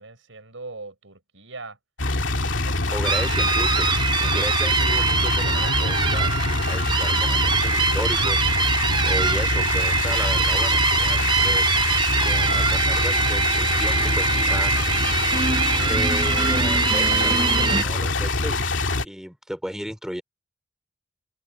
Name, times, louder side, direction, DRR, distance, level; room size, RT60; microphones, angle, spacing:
voice 1, 0.0-1.8 2.6-3.4, right 3 dB, 90° right, 5.3 m, -41 dB
sound 1, 2.0-19.0, left 2 dB, 75° left, 2.4 m, -24 dB
voice 2, 2.9-3.9 4.2-8.6 9.0-11.7 12.2-15.3 15.9-18.7 19.0-20.2, equal, 5° right, 4.5 m, -35 dB
sound 2, 3.0-17.8, right 5 dB, 25° right, 0.6 m, -23 dB
head